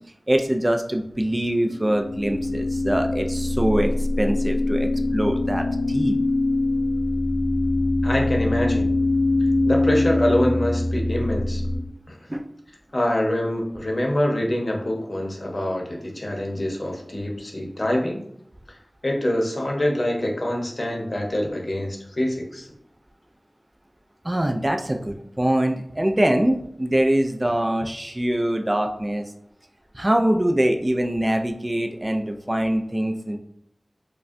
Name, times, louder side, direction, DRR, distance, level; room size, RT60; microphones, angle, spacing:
voice 1, 0.3-6.2 12.3-12.5 24.2-29.2 29.9-33.4, right 1 dB, 25° right, 4 dB, 0.3 m, -23 dB
sound 1, 1.6-11.8, left 2 dB, 45° right, 1.4 m, -23 dB
voice 2, 8.0-8.9 9.7-11.6 12.1-12.2 12.9-18.2 19.0-22.7, left 1 dB, 45° left, 0 dB, 0.8 m, -25 dB
5.0 x 2.2 x 2.5 m, 0.71 s
wide cardioid pair, 55°, 0 cm